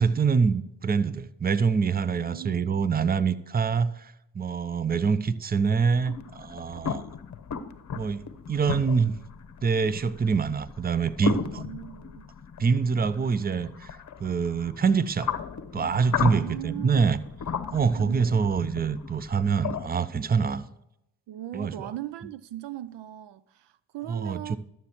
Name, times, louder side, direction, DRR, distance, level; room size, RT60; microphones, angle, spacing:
voice 1, 0.0-7.0 7.9-9.1 9.6-11.6 12.6-13.9 14.2-15.3 15.7-17.2 17.7-20.7 21.5-21.9 24.1-24.6, right 5 dB, 20° right, 0.6 m, -25 dB
voice 2, 2.2-2.8 11.5-12.3 16.2-17.2 18.0-18.4 21.3-24.6, right 13 dB, 65° right, 0.5 m, -39 dB
sound 1, 6.0-19.8, left 7 dB, 40° left, 0.9 m, -35 dB
13.0 x 7.2 x 3.0 m
supercardioid pair, 55°, 46 cm